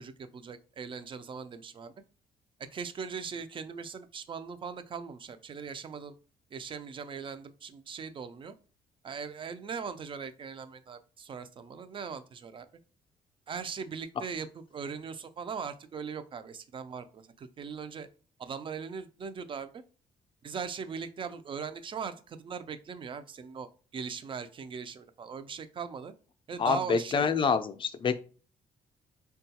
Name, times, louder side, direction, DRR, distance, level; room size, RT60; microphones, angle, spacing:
voice 1, 0.0-1.9 2.6-6.1 6.5-8.5 9.0-12.7 13.5-18.1 18.4-19.8 20.4-26.1 26.5-27.3, right 6 dB, 35° right, 11 dB, 0.4 m, -40 dB
voice 2, 26.6-28.2, left 6 dB, 35° left, 10 dB, 0.4 m, -27 dB
3.6 x 2.3 x 2.8 m, 0.37 s
cardioid pair, 85°, 14 cm